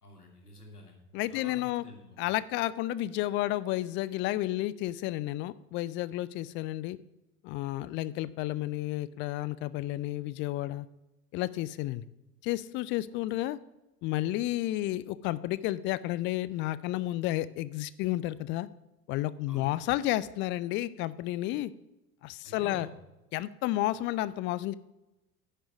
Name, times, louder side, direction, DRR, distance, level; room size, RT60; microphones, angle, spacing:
voice 1, 0.0-1.0 1.3-2.2 13.1-13.2 19.5-19.8 22.4-22.9, left 2 dB, 85° left, 2 dB, 2.1 m, -48 dB
voice 2, 1.1-1.8 2.2-7.0 7.4-10.9 11.3-12.0 12.4-13.6 14.0-18.7 19.1-21.7 22.2-22.9 23.3-24.7, left 16 dB, 30° left, 18 dB, 0.4 m, -31 dB
10.5 x 6.6 x 5.9 m, 0.97 s
figure-of-eight pair, 70°, 45 cm